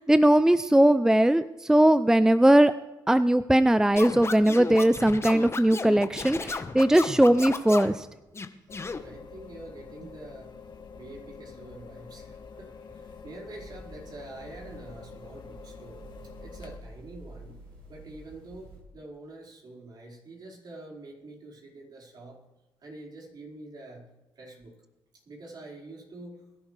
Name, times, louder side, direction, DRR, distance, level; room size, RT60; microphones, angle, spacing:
voice 1, 0.0-2.7 3.1-8.1, right 1 dB, 5° right, 13 dB, 0.5 m, -20 dB
Scratching (performance technique), 4.0-8.0 8.3-9.0, left 4 dB, 30° left, 1.2 m, -34 dB
sound 1, 8.7-16.8, left 5 dB, 60° left, 1.7 m, -46 dB
voice 2, 9.0-10.5 10.9-16.0 16.4-17.6 17.9-22.4 22.8-24.1 24.3-24.8 25.2-26.4, right 2 dB, 50° right, -2 dB, 5.0 m, -46 dB
sound 2, 13.6-18.8, right 2 dB, 85° right, 6.1 m, -49 dB
22.5 x 11.0 x 3.4 m, 1.0 s
cardioid pair, 75°, 9 cm